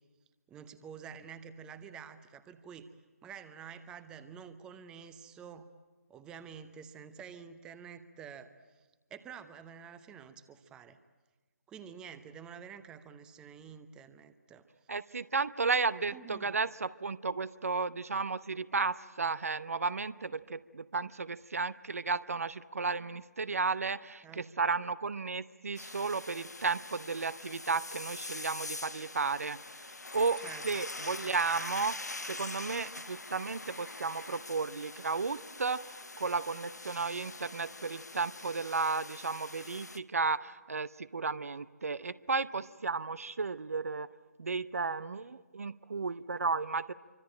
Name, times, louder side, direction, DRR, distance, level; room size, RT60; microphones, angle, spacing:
voice 1, 0.5-2.9 3.2-5.7 6.1-11.0 11.7-14.7 16.1-16.6 24.2-24.5 30.4-30.6, right 7 dB, 10° right, 12 dB, 0.8 m, -49 dB
voice 2, 14.9-29.6 30.1-44.1 44.4-46.9, right 4 dB, 60° right, 16 dB, 0.8 m, -33 dB
sound 1, 25.8-40.0, left 2 dB, 80° left, 1.1 m, -44 dB
26.0 x 24.5 x 8.9 m, 1.3 s
figure-of-eight pair, 145°, 9 cm